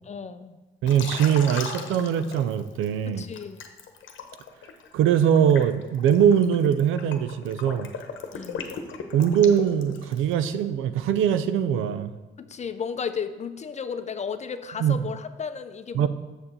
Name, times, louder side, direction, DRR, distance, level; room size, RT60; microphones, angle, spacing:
voice 1, 0.0-0.6 3.1-3.6 8.3-8.8 12.4-16.1, left 6 dB, 35° left, 10 dB, 0.6 m, -34 dB
voice 2, 0.8-3.2 4.9-7.9 9.1-12.1 14.8-15.0 15.9-16.1, right 9 dB, 90° right, 12 dB, 0.5 m, -22 dB
Liquid, 0.9-2.9 3.3-10.3, left 6 dB, 70° left, 1.0 m, -37 dB
6.9 x 6.7 x 4.3 m, 1.2 s
cardioid pair, 90°, 20 cm